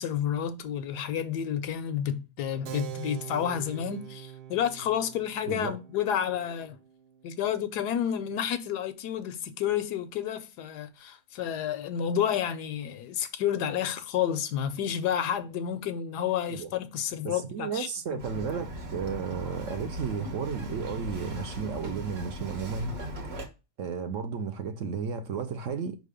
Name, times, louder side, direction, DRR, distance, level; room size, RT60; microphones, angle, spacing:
voice 1, 0.0-6.8 7.2-18.2, left 9 dB, 85° left, 1.3 m, -30 dB
Keyboard (musical), 2.7-8.8, right 11 dB, 90° right, 1.3 m, -44 dB
voice 2, 5.5-5.8 16.5-16.7 17.2-23.0 23.8-26.0, right 6 dB, 60° right, 0.9 m, -33 dB
Bird vocalization bird call bird song, 18.2-23.5, equal, 45° right, 1.3 m, -38 dB
5.3 x 3.8 x 4.9 m
omnidirectional pair, 1.7 m